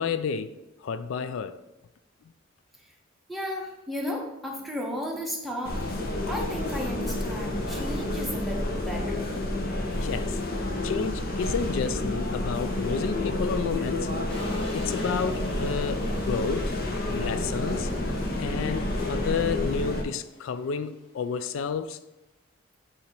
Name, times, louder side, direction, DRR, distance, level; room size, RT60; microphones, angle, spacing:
voice 1, 0.0-1.6 9.9-10.4 10.8-14.1 14.7-16.8 17.1-18.0 18.4-22.0, left 6 dB, 85° left, 0.3 m, -31 dB
voice 2, 3.3-5.8 6.3-9.3, left 1 dB, ahead, 1.0 m, -34 dB
sound 1, 5.6-20.0, left 1 dB, 50° left, 1.0 m, -29 dB
sound 2, 14.3-21.4, left 1 dB, 30° left, 1.5 m, -47 dB
8.4 x 2.8 x 4.4 m
head